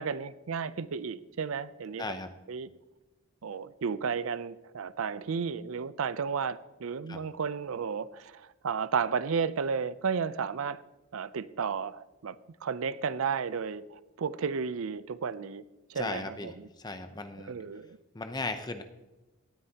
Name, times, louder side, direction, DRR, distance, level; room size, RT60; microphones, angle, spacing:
voice 1, 0.0-2.1 2.5-2.7 3.4-10.8 11.1-12.4 12.6-15.6 15.9-16.7 17.5-18.0, right 6 dB, 75° right, 0.5 m, -33 dB
voice 2, 2.0-2.3 7.1-7.2 15.9-17.5 18.1-18.8, left 3 dB, 20° left, 0.7 m, -37 dB
17.5 x 9.7 x 2.9 m
head